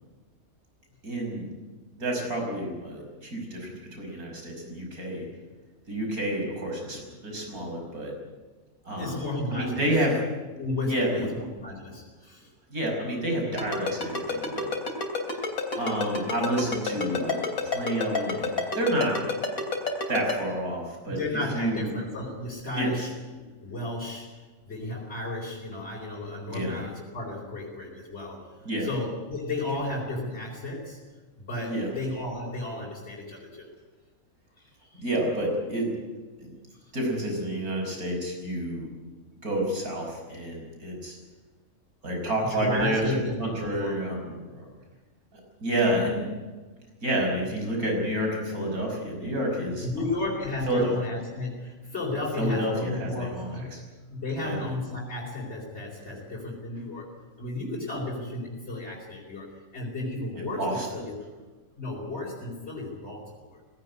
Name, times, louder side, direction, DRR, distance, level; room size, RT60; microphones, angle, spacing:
voice 1, 1.0-1.4 2.0-5.3 5.9-8.1 8.8-9.2 9.5-10.2 10.9-11.3 12.7-14.7 15.7-19.2 20.1-21.2 21.5-21.9 22.7-23.1 26.5-26.7 28.6-28.9 31.7-31.9 34.9-35.9 36.4-36.5 36.9-38.9 39.4-41.2 42.0-44.7 45.3-46.3 47.0-49.9 50.7-50.9 52.4-53.8 54.4-54.6 60.4-61.0, right 1 dB, 80° right, 1 dB, 6.1 m, -29 dB
voice 2, 9.0-9.9 10.6-12.5 21.1-24.3 24.7-28.5 28.8-31.0 31.4-33.7 34.9-35.0 42.5-44.0 49.7-53.8 54.1-57.0 57.4-59.5 59.7-61.1 61.8-63.6, left 2 dB, 45° left, -4 dB, 4.8 m, -33 dB
Ringtone, 13.6-20.3, left 4 dB, 70° left, 3.7 m, -28 dB
19.0 x 17.0 x 9.7 m, 1.3 s
omnidirectional pair, 1.5 m